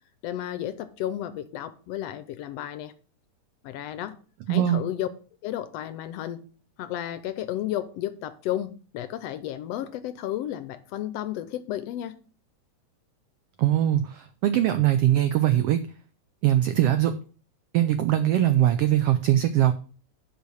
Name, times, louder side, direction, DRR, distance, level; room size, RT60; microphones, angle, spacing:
voice 1, 0.2-2.9 3.6-4.1 4.5-5.1 5.4-6.4 6.8-12.1, left 12 dB, 75° left, 1.5 m, -32 dB
voice 2, 4.5-4.8 13.6-15.8 16.4-17.1 17.7-19.7, right 12 dB, 80° right, 1.3 m, -21 dB
8.5 x 5.6 x 6.3 m
omnidirectional pair, 3.4 m